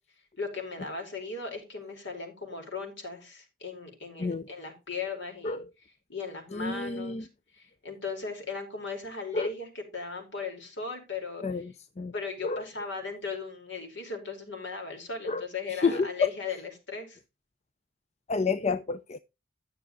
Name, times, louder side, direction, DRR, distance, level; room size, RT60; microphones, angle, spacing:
voice 1, 0.4-5.6 6.1-7.3 7.5-11.6 12.1-17.2, left 4 dB, 65° left, 4.8 m, -37 dB
voice 2, 6.5-7.2 9.3-9.5 11.4-12.1 12.4-12.6 15.3-15.4 15.7-16.3 18.3-19.2, left 4 dB, 35° left, 0.6 m, -29 dB
13.0 x 6.8 x 4.9 m
head